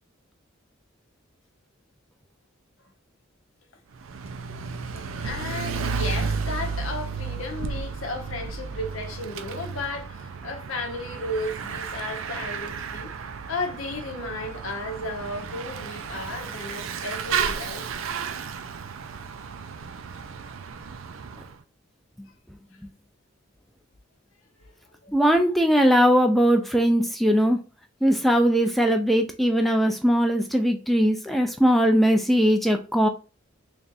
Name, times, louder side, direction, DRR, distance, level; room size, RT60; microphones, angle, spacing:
Bicycle / Mechanisms, 3.9-21.5, right 5 dB, 75° right, 0.4 m, -33 dB
voice 1, 4.9-13.1 13.5-17.9 25.0-25.1, left 2 dB, 80° left, 0.8 m, -34 dB
voice 2, 25.1-27.6 28.0-33.1, equal, ahead, 0.3 m, -20 dB
3.4 x 2.6 x 3.9 m
head